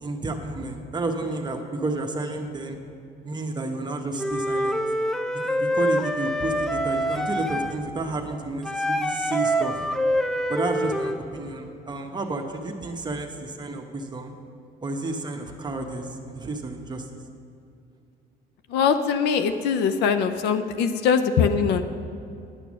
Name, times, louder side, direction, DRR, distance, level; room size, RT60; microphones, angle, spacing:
voice 1, 0.0-2.8 3.2-4.8 5.4-9.9 10.5-14.3 14.8-17.1, right 2 dB, 25° right, 3 dB, 0.9 m, -31 dB
Wind instrument woodwind instrument, 4.2-7.8 8.6-11.2, equal, 5° left, 0.5 m, -25 dB
voice 2, 18.7-21.8, left 6 dB, 85° left, 9 dB, 0.6 m, -22 dB
10.5 x 6.8 x 6.2 m, 2.6 s
cardioid pair, 110°, 17 cm